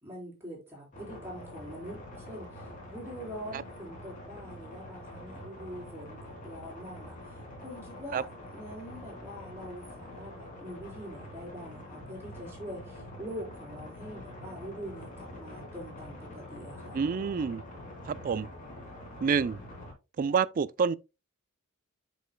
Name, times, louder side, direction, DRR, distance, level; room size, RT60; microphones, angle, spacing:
voice 1, 0.0-17.0, equal, 10° right, 4.1 m, -44 dB
sound 1, 0.9-19.9, left 1 dB, 40° left, 2.9 m, -45 dB
voice 2, 16.9-17.6 18.1-18.5 19.2-19.6 20.2-20.9, right 6 dB, 40° right, 0.3 m, -28 dB
9.9 x 5.4 x 2.2 m
head